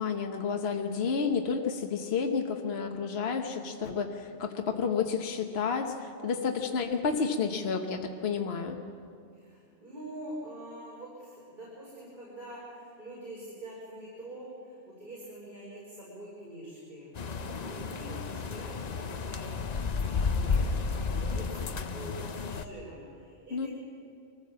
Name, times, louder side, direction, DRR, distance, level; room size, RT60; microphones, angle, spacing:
voice 1, 0.0-8.8 23.5-23.7, left 5 dB, 60° left, 3 dB, 1.3 m, -30 dB
voice 2, 9.3-23.7, right 1 dB, 40° right, -8 dB, 5.1 m, -45 dB
sound 1, 17.2-22.7, left 4 dB, 40° left, 0.7 m, -32 dB
23.5 x 15.0 x 7.5 m, 2.5 s
omnidirectional pair, 1.2 m